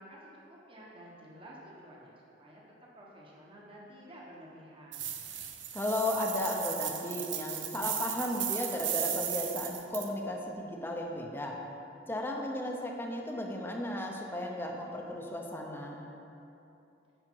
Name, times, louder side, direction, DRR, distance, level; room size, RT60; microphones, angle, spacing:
voice 1, 0.0-2.6 2.9-5.1, equal, 30° right, -4 dB, 1.1 m, -51 dB
sound 1, 4.9-10.1, right 9 dB, 80° right, 0.7 m, -36 dB
voice 2, 5.7-11.6 12.1-16.0, left 1 dB, 10° left, 0 dB, 0.7 m, -35 dB
10.0 x 5.0 x 4.6 m, 2.8 s
head